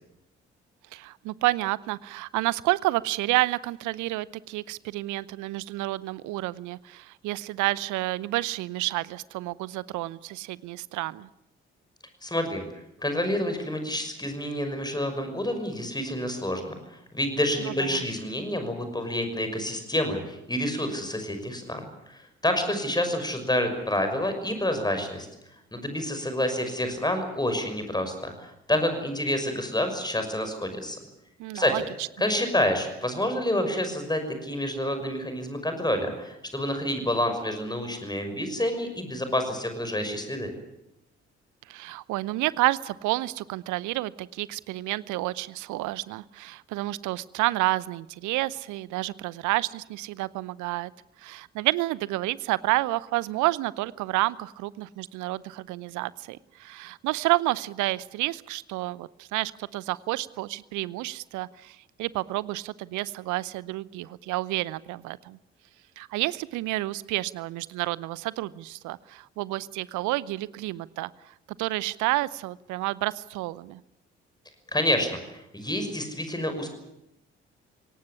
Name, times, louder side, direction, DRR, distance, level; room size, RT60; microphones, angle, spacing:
voice 1, 0.9-11.3 17.7-18.0 31.4-32.1 41.7-50.9 51.2-65.4 66.0-71.1 71.6-73.8, right 18 dB, 65° right, 21 dB, 0.8 m, -30 dB
voice 2, 12.2-12.6 13.0-25.3 25.7-31.0 31.5-31.7 32.2-40.5 74.7-76.7, left 1 dB, 10° left, 7 dB, 5.9 m, -28 dB
21.5 x 18.0 x 9.9 m, 0.88 s
figure-of-eight pair, 40°, 33 cm